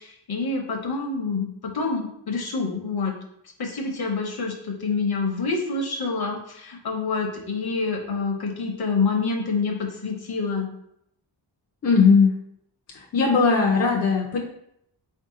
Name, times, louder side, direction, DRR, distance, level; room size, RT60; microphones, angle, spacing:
voice 1, 0.0-3.1 3.6-10.7, left 4 dB, 55° left, 2 dB, 0.9 m, -27 dB
voice 2, 11.8-12.4 12.9-14.4, left 5 dB, 35° left, -1 dB, 0.5 m, -19 dB
4.3 x 2.7 x 3.7 m, 0.75 s
wide cardioid pair, 145°, 45 cm